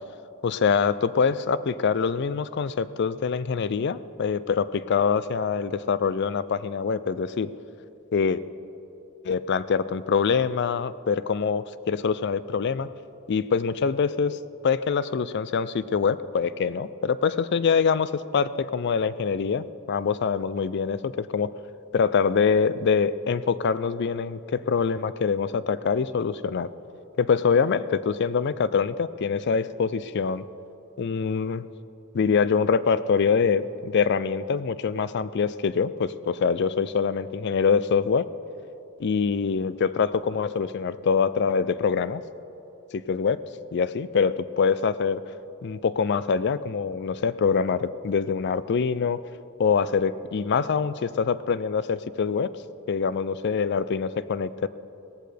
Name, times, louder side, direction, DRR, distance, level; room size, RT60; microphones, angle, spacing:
voice 1, 0.4-7.5 8.1-8.4 9.2-12.9 13.3-14.4 14.6-21.5 21.9-26.7 27.2-30.4 31.0-31.7 32.1-38.3 39.0-42.2 42.9-43.4 43.7-45.2 45.6-49.2 49.6-52.5 52.9-54.7, left 6 dB, 50° left, 16 dB, 0.4 m, -24 dB
17.5 x 14.0 x 3.4 m, 2.8 s
head